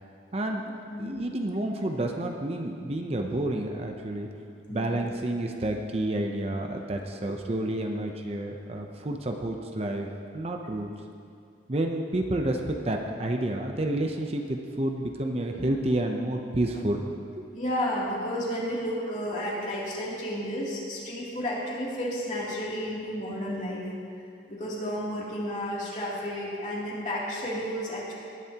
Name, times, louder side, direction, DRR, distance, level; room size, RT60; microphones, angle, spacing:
voice 1, 0.3-4.3 4.7-10.1 10.3-10.9 11.7-17.4, right 1 dB, 35° right, 3 dB, 0.7 m, -30 dB
voice 2, 0.9-1.2 4.7-5.0 17.5-23.9 24.5-28.1, equal, 45° left, -6 dB, 2.8 m, -32 dB
19.5 x 11.0 x 2.9 m, 2.4 s
head